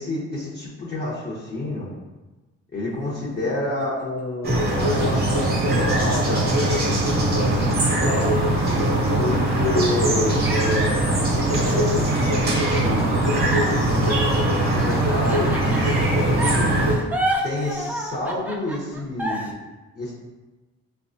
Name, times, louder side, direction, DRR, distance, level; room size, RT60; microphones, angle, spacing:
voice 1, 0.0-1.9 2.7-7.1 7.3-8.4 9.2-13.4 13.8-14.4 14.7-16.7 17.4-19.5 19.9-20.1, left 2 dB, 35° left, -7 dB, 0.9 m, -29 dB
sound 1, 2.9-4.2 4.9-7.1 7.6-7.7 8.1-10.2 10.5-12.5 13.5-16.0 16.4-19.5, right 1 dB, 5° right, 0.4 m, -32 dB
sound 2, 4.4-17.0, right 1 dB, 35° right, 0.8 m, -21 dB
4.6 x 2.3 x 2.6 m, 1.2 s
cardioid pair, 90°, 30 cm